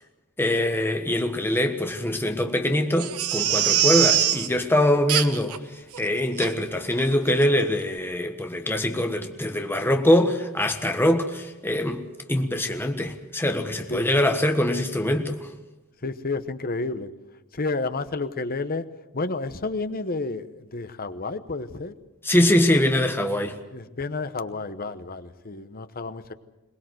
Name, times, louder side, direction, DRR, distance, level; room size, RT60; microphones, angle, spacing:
voice 1, 0.4-5.6 6.0-12.0 12.3-15.4 22.2-23.6, left 1 dB, 10° left, 1.3 m, -23 dB
Crying sobbing, 3.0-4.5 5.1-5.6 5.9-6.0 6.4-6.5 7.0-7.1 7.4-7.5, right 10 dB, 75° right, 1.2 m, -23 dB
voice 2, 16.0-17.1 17.5-18.9 19.1-21.9 23.7-26.3, left 3 dB, 40° left, 1.0 m, -30 dB
22.5 x 19.5 x 7.8 m
head